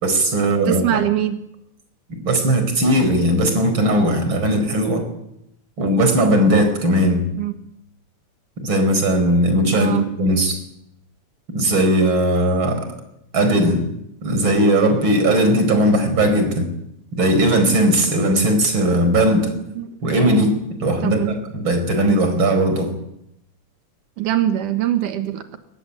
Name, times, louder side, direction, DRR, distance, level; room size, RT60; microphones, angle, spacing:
voice 1, 0.0-1.0 2.1-5.1 5.8-7.3 8.6-10.6 11.5-12.9 13.3-13.9 14.2-16.7 17.1-19.5 20.0-22.9, right 1 dB, 40° right, 7 dB, 5.3 m, -18 dB
voice 2, 0.7-1.4 7.4-7.5 9.8-10.1 19.8-20.1 21.0-21.3 24.2-25.6, right 11 dB, 90° right, 7 dB, 3.0 m, -22 dB
23.0 x 19.0 x 10.0 m, 0.80 s
omnidirectional pair, 3.5 m